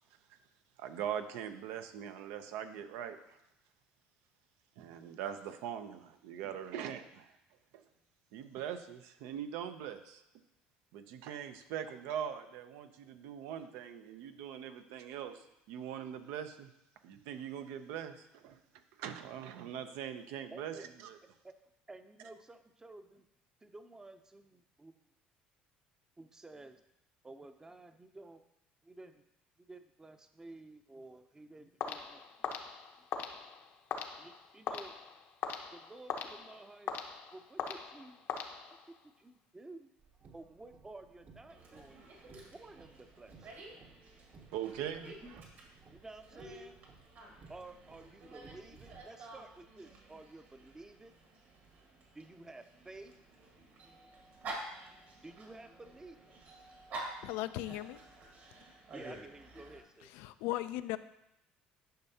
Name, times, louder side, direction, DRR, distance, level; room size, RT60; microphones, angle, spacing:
voice 1, 0.8-3.4 4.8-7.4 7.7-7.8 8.3-10.2 10.9-16.7 17.0-21.2 44.5-45.4, right 9 dB, 80° right, 8 dB, 0.6 m, -42 dB
voice 2, 20.5-20.8 21.4-21.5 21.9-23.3 23.6-25.0 26.2-26.8 27.2-28.4 28.8-29.2 29.6-32.5 34.2-34.9 35.7-37.0 37.3-38.3 39.0-39.9 40.3-42.1 42.5-43.5 45.1-45.4 45.9-46.8 47.5-51.2 52.1-53.1 55.2-56.2 58.9-60.2, right 2 dB, 15° right, 9 dB, 0.6 m, -52 dB
sound 1, 31.8-39.0, left 7 dB, 60° left, 0.8 m, -42 dB
Car, 40.0-49.0, right 4 dB, 40° right, 0.9 m, -60 dB
Dog, 41.5-59.8, right 2 dB, 60° right, 1.8 m, -50 dB
voice 3, 57.2-58.0 60.1-61.0, left 15 dB, 80° left, 13 dB, 0.3 m, -37 dB
10.0 x 5.5 x 2.8 m, 0.85 s
supercardioid pair, 100°, 4 cm